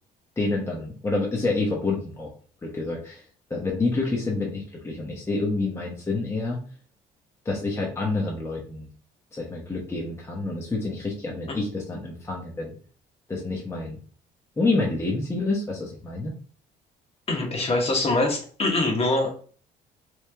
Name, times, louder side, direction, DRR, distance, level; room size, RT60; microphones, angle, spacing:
voice 1, 0.4-2.3 2.6-3.2 3.5-6.6 7.4-8.9 9.3-12.8 13.3-14.0 14.6-16.3, left 3 dB, 15° left, -2 dB, 0.9 m, -28 dB
voice 2, 17.3-19.3, left 2 dB, 35° left, 2 dB, 1.2 m, -23 dB
3.2 x 3.1 x 3.3 m, 0.42 s
cardioid pair, 110°, 17 cm